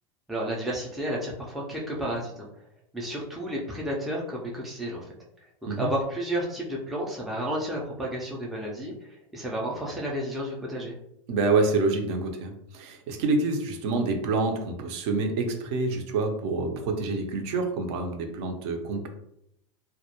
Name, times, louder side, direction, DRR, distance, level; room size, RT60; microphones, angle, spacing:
voice 1, 0.3-2.5 2.9-5.0 5.8-10.9, right 1 dB, ahead, -3 dB, 0.3 m, -31 dB
voice 2, 11.3-19.1, right 3 dB, 60° right, 4 dB, 0.5 m, -27 dB
2.2 x 2.0 x 2.8 m, 0.76 s
supercardioid pair, 145°, 16 cm